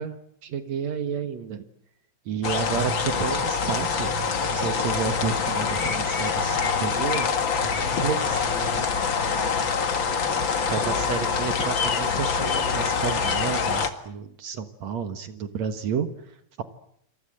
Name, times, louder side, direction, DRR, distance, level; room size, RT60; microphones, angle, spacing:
voice 1, 0.0-1.6 2.3-4.1 4.5-7.3 7.6-8.5 10.7-16.6, right 7 dB, 70° right, 8 dB, 2.7 m, -31 dB
sound 1, 2.4-13.9, left 5 dB, 45° left, 2.4 m, -25 dB
voice 2, 7.8-9.7, right 1 dB, 25° left, 4 dB, 3.7 m, -39 dB
27.5 x 27.0 x 7.9 m, 0.73 s
omnidirectional pair, 3.3 m